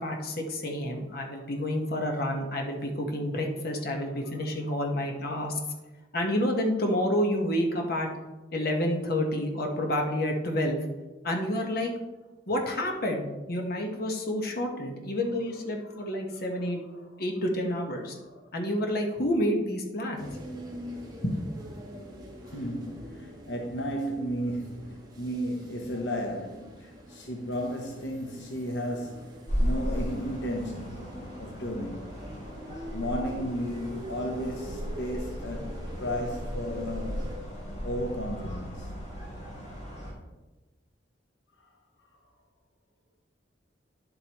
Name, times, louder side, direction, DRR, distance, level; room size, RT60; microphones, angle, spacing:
voice 1, 0.0-5.6 6.1-8.1 8.5-10.8 11.2-11.9 12.5-16.8 17.2-18.1 18.5-20.3 21.2-21.4, left 1 dB, 60° left, 1.4 m, -29 dB
sound 1, 20.2-37.3, equal, 20° right, 1.6 m, -44 dB
voice 2, 22.4-31.1 31.4-32.1 32.9-37.3 37.8-39.0 41.6-41.7 42.1-42.2, equal, 85° left, 0.9 m, -34 dB
sound 2, 29.5-40.1, equal, 40° left, 3.1 m, -36 dB
10.0 x 7.9 x 3.1 m
head